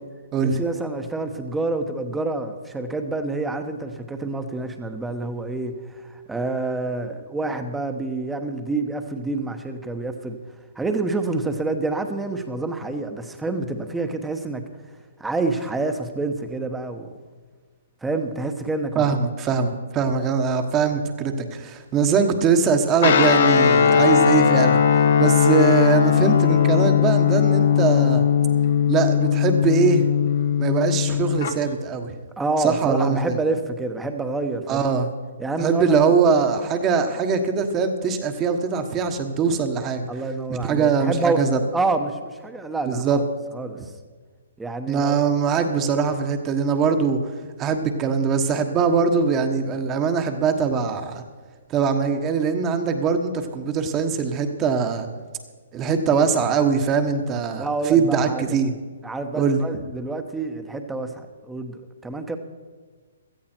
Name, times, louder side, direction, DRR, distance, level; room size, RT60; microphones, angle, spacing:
voice 1, 0.4-10.4 10.7-14.6 15.2-17.1 18.0-19.1 32.4-34.8 35.4-36.0 40.1-41.4 41.7-43.2 43.5-43.8 44.6-45.2 57.6-58.5 59.0-62.4, right 3 dB, 5° right, 7 dB, 1.2 m, -27 dB
voice 2, 18.9-24.8 25.2-28.2 28.9-30.1 30.6-32.1 32.6-33.4 34.7-35.1 35.6-40.1 40.5-41.6 42.9-43.2 43.7-43.8 44.9-47.2 47.6-51.2 51.7-55.1 55.7-58.7 59.3-59.6, right 5 dB, 25° right, 7 dB, 1.4 m, -22 dB
Guitar, 23.0-31.5, left 7 dB, 60° left, 1.1 m, -18 dB
17.0 x 13.5 x 4.6 m, 1.5 s
hypercardioid pair, 140°, 0 cm